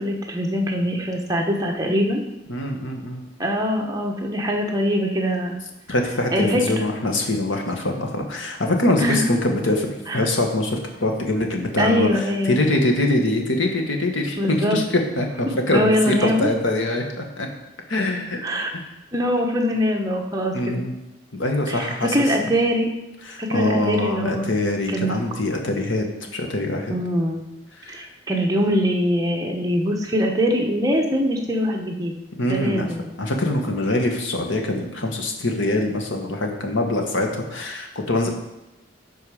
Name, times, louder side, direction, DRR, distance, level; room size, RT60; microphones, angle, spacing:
voice 1, 0.0-2.2 3.4-5.6 6.3-6.6 9.0-9.3 10.1-10.3 11.8-12.6 14.4-14.8 15.7-16.5 18.4-18.7 19.1-20.9 21.7-22.9 23.4-24.5 24.9-25.2 26.9-27.4 27.9-32.1 32.5-33.0, equal, 20° right, 0 dB, 1.1 m, -22 dB
voice 2, 2.5-3.2 5.9-14.8 15.2-17.5 17.9-18.4 18.7-18.8 20.5-20.9 21.3-22.2 23.3-26.0 26.3-26.9 27.8-28.0 32.4-32.9 33.2-38.3, left 1 dB, 80° left, 2 dB, 1.4 m, -23 dB
12.5 x 4.6 x 4.9 m, 0.97 s
head